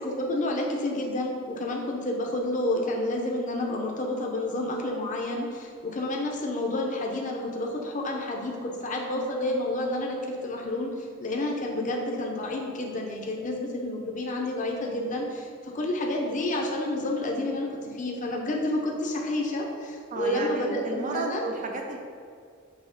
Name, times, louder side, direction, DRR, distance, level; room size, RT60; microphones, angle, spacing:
voice 1, 0.0-21.4, left 1 dB, 40° left, 0 dB, 0.7 m, -30 dB
voice 2, 20.1-22.0, right 3 dB, 40° right, 2 dB, 0.5 m, -32 dB
6.3 x 2.9 x 5.2 m, 2.3 s
head